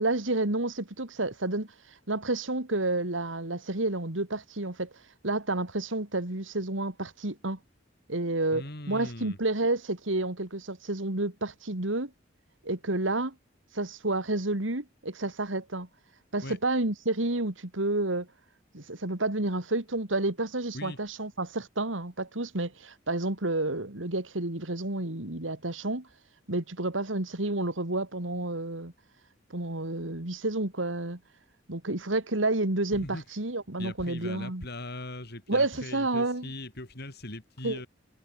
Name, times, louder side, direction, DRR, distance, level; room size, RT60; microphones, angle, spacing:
voice 1, 0.0-1.7 2.1-4.9 5.2-7.6 8.1-12.1 12.6-13.3 13.7-15.9 16.3-18.3 18.7-26.1 26.5-28.9 29.5-31.2 31.7-34.7 35.5-36.5 37.6-37.8, right 2 dB, 80° right, 3.0 m, -30 dB
voice 2, 8.5-9.4 16.4-16.6 20.7-21.0 32.9-33.2 33.8-37.9, left 1 dB, 60° left, 7.2 m, -40 dB
head